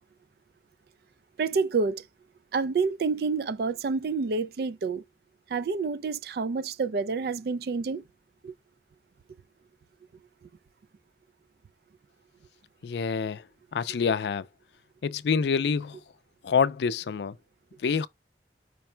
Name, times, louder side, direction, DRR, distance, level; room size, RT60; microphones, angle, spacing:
voice 1, 1.4-2.0 2.5-5.0 5.5-8.0 8.4-8.5, right 4 dB, 60° right, 0.3 m, -28 dB
voice 2, 12.8-13.5 13.7-14.5 15.0-16.0 16.4-17.4 17.8-18.1, left 6 dB, 70° left, 0.4 m, -26 dB
5.2 x 2.1 x 4.3 m
head